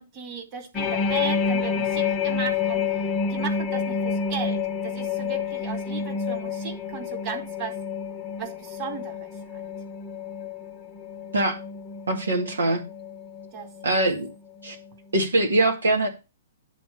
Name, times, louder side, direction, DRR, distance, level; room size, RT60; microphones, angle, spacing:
voice 1, 0.0-2.8 3.3-7.8 8.4-9.6 13.5-14.0, right 7 dB, 30° right, 4 dB, 2.2 m, -36 dB
sound 1, 0.7-14.3 14.6-14.9, left 6 dB, 20° left, 1.0 m, -29 dB
voice 2, 12.1-12.8 13.8-14.3 14.6-14.8 15.1-16.1, right 2 dB, 75° right, 3 dB, 1.8 m, -22 dB
10.5 x 3.5 x 6.9 m, 0.27 s
figure-of-eight pair, 115°, 0 cm